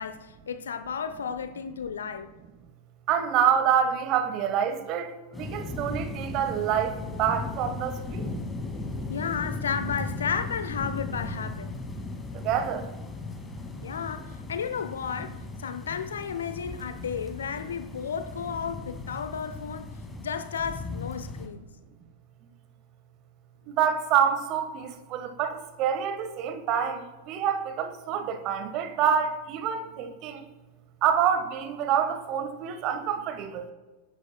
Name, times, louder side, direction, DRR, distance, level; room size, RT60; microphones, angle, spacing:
voice 1, 0.0-2.3 9.1-11.7 13.8-21.7, left 7 dB, 65° left, 0.8 m, -33 dB
voice 2, 3.1-8.3 12.4-12.8 23.7-30.4 31.0-33.7, right 8 dB, 40° right, 1.4 m, -27 dB
sound 1, 5.3-21.5, left 3 dB, 10° left, 2.2 m, -37 dB
22.0 x 10.5 x 2.3 m
figure-of-eight pair, 90°, 0 cm